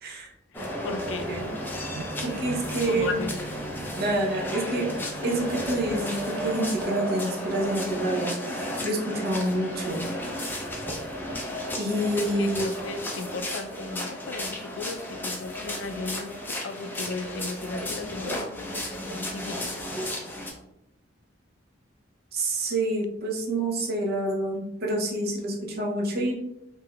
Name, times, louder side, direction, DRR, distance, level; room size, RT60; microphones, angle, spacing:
voice 1, 0.0-0.3 1.3-1.5 2.2-3.2 3.9-4.9 5.2-10.1 11.8-12.7 22.3-26.4, right 1 dB, 55° right, -2 dB, 0.7 m, -28 dB
voice 2, 0.5-1.3 2.9-3.4 12.2-16.4 16.6-18.5 18.8-19.1 19.3-19.7, left 3 dB, 75° left, 8 dB, 0.4 m, -35 dB
sound 1, 0.5-20.5, equal, 10° left, 0.5 m, -33 dB
sound 2, 1.0-6.7, right 3 dB, 90° right, 0.3 m, -42 dB
3.5 x 2.6 x 2.2 m, 0.84 s
head